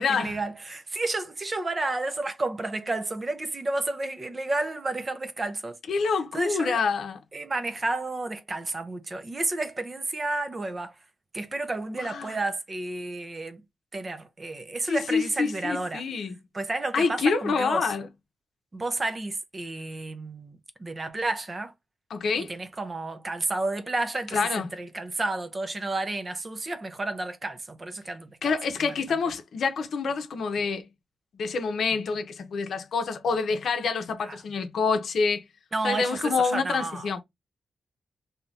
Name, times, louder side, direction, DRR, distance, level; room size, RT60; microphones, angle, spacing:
voice 1, 0.0-5.8 6.3-6.8 7.3-11.0 11.3-13.6 13.9-16.0 16.5-17.9 18.7-21.7 22.4-28.5 28.8-28.9 34.2-34.4 35.7-37.1, right 2 dB, 30° right, 0.5 m, -31 dB
voice 2, 5.9-7.2 12.0-12.4 14.9-16.4 16.9-18.1 22.1-22.5 24.3-24.7 28.4-30.9 31.3-35.4 35.8-37.2, left 5 dB, 75° left, 0.6 m, -27 dB
2.7 x 2.5 x 3.4 m
wide cardioid pair, 125°, 0 cm